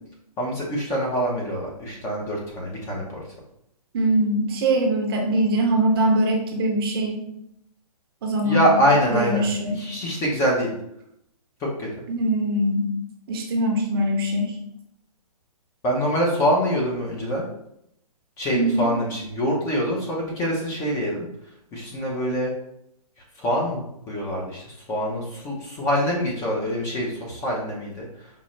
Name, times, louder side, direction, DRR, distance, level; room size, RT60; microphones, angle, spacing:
voice 1, 0.4-3.2 8.4-9.5 9.8-10.7 11.6-11.9 15.8-17.5 18.4-21.3 21.7-22.5 23.4-28.3, equal, 15° left, -2 dB, 0.6 m, -25 dB
voice 2, 3.9-7.2 8.2-8.7 9.1-9.8 12.1-12.9 13.3-14.6 18.5-18.9, right 1 dB, 40° right, 2 dB, 0.6 m, -22 dB
5.2 x 2.1 x 3.0 m, 0.77 s
hypercardioid pair, 145°, 20 cm